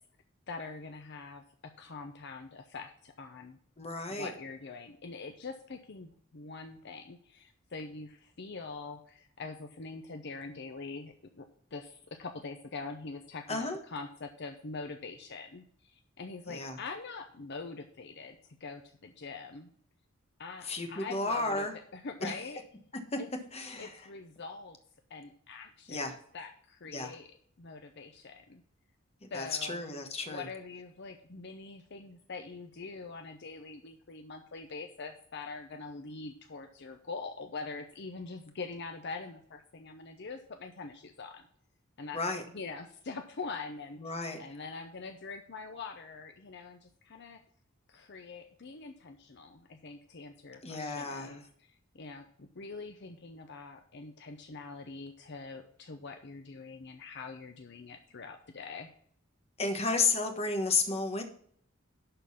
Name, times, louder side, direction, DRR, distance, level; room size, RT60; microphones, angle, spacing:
voice 1, 0.5-3.6 4.1-19.7 20.4-22.6 23.2-23.3 23.8-24.8 25.1-26.0 26.3-28.6 29.3-29.8 30.3-41.5 42.0-42.2 42.5-47.4 47.9-51.4 51.9-58.9, left 4 dB, 55° left, 5 dB, 0.7 m, -44 dB
voice 2, 3.8-4.3 13.5-13.8 16.5-16.8 20.6-21.8 22.2-22.4 23.1-23.2 23.5-24.1 25.9-26.2 26.9-27.1 29.2-30.5 42.1-42.4 44.0-44.4 50.6-51.4 59.6-61.2, left 3 dB, 30° left, 6 dB, 1.2 m, -32 dB
11.0 x 3.9 x 6.9 m, 0.63 s
head